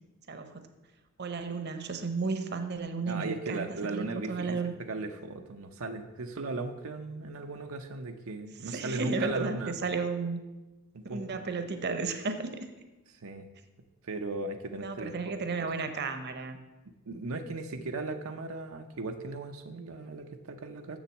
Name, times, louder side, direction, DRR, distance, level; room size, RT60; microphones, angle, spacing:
voice 1, 1.2-4.7 8.6-10.4 11.0-12.7 14.8-16.6, right 4 dB, 55° right, 8 dB, 0.9 m, -33 dB
voice 2, 3.1-9.8 11.1-11.4 13.2-13.5 14.0-15.3 15.6-15.7 17.1-21.0, right 3 dB, 85° right, 5 dB, 0.7 m, -37 dB
7.3 x 6.9 x 7.1 m, 1.1 s
head